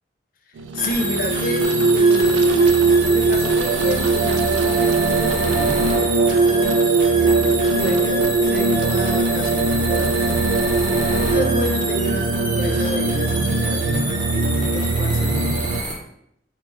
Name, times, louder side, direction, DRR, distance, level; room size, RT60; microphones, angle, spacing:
sound 1, 0.6-15.8, right 3 dB, 80° right, 0.3 m, -20 dB
voice 1, 0.7-5.9 7.2-10.4 11.3-15.6, left 1 dB, 50° left, 5 dB, 0.4 m, -29 dB
sound 2, 0.8-16.0, right 2 dB, 25° right, 0.8 m, -28 dB
3.2 x 2.4 x 3.8 m, 0.72 s
head